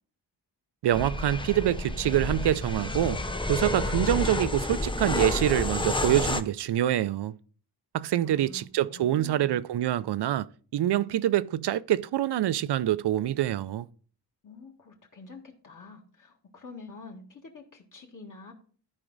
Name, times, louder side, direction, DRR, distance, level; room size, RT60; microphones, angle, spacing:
voice 1, 0.8-3.2 3.5-7.4 7.9-10.5 10.7-13.9, right 12 dB, 70° right, 0.5 m, -26 dB
sound 1, 0.9-6.4, left 2 dB, 10° left, 0.5 m, -30 dB
voice 2, 8.2-9.6 14.4-18.5, left 3 dB, 45° left, 1.7 m, -47 dB
13.5 x 4.9 x 3.9 m
wide cardioid pair, 150°, 43 cm